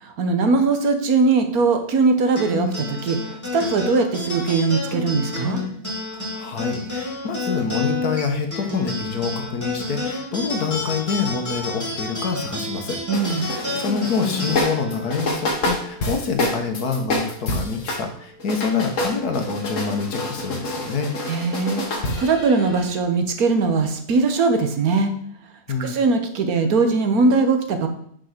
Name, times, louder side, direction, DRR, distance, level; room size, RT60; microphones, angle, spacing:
voice 1, 0.0-3.2 3.5-5.6 13.1-13.5 21.3-25.1 25.8-27.9, right 4 dB, 65° right, 6 dB, 1.5 m, -20 dB
sound 1, 2.3-17.1, left 2 dB, 10° left, 2.6 m, -30 dB
voice 2, 6.3-13.0 13.4-21.1 25.7-25.9, left 5 dB, 75° left, 5 dB, 1.7 m, -26 dB
sound 2, 13.1-18.1 18.4-23.0, left 1 dB, 55° left, 1.5 m, -27 dB
6.3 x 5.6 x 6.6 m, 0.67 s
omnidirectional pair, 1.7 m